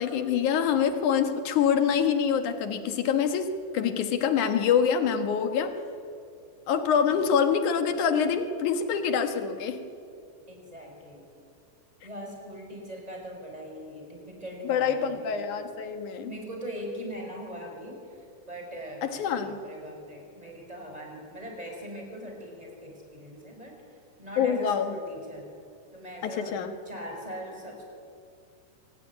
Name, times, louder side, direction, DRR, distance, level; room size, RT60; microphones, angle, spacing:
voice 1, 0.0-3.5 3.7-5.7 6.7-9.8 14.6-16.3 19.0-19.6 24.4-24.9 26.2-26.7, left 7 dB, 70° left, 8 dB, 2.8 m, -25 dB
voice 2, 10.5-11.2 12.0-15.3 16.3-23.7 24.2-25.4 25.9-26.5 26.9-27.8, equal, 10° right, 1 dB, 5.8 m, -41 dB
25.0 x 20.0 x 9.7 m, 2.5 s
omnidirectional pair, 3.7 m